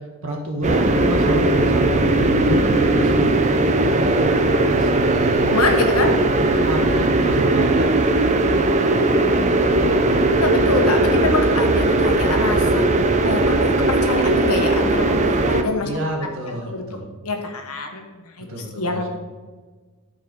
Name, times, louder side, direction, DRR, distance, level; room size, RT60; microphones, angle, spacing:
voice 1, 0.2-3.3 3.9-10.2 15.4-15.6 15.8-17.1 18.5-19.1, right 1 dB, 60° right, 0 dB, 1.7 m, -29 dB
sound 1, 0.6-15.6, right 2 dB, 30° right, 0.6 m, -18 dB
voice 2, 5.5-6.2 7.2-7.3 10.4-12.8 13.2-15.9 16.5-16.8 17.2-19.1, left 3 dB, 90° left, 4 dB, 1.3 m, -25 dB
12.5 x 4.7 x 4.5 m, 1.4 s
head